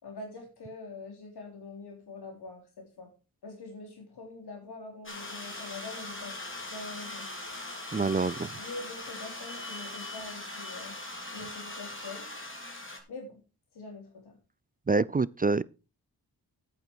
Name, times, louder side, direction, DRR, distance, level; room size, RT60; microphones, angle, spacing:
voice 1, 0.0-3.1 3.4-6.4 6.7-7.7 8.6-10.9 11.3-12.2 13.1-13.4 13.7-14.4, left 3 dB, 90° left, 3.7 m, -44 dB
sound 1, 5.1-13.0, left 2 dB, 30° left, 3.7 m, -40 dB
voice 2, 7.9-8.3 14.9-15.6, right 3 dB, 25° right, 0.4 m, -26 dB
9.4 x 9.1 x 4.6 m
cardioid pair, 45°, 38 cm